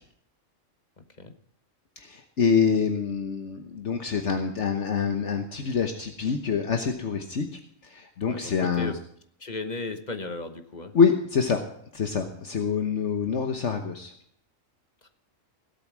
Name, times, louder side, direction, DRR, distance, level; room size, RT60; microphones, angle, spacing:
voice 1, 1.0-1.3 8.2-9.0 9.4-10.9, left 3 dB, 35° left, 8 dB, 1.2 m, -35 dB
voice 2, 2.0-7.5 7.8-8.9 10.9-11.6 11.9-14.1, left 6 dB, 60° left, 5 dB, 1.4 m, -26 dB
17.0 x 8.3 x 6.1 m, 0.67 s
omnidirectional pair, 1.4 m